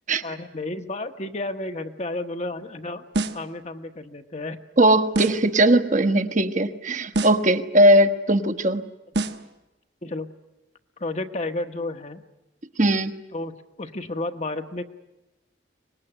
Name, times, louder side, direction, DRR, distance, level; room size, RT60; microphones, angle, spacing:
voice 1, 0.2-3.0 3.3-4.6 10.0-10.3 11.0-12.2 13.3-14.8, left 2 dB, 35° left, 7 dB, 1.2 m, -32 dB
sound 1, 3.1-3.5 5.1-5.5 7.1-7.5 9.1-9.5, right 2 dB, 60° right, 1.2 m, -27 dB
voice 2, 4.8-8.8 12.8-13.1, right 1 dB, 40° right, 9 dB, 1.2 m, -19 dB
25.0 x 20.0 x 9.9 m, 1.0 s
head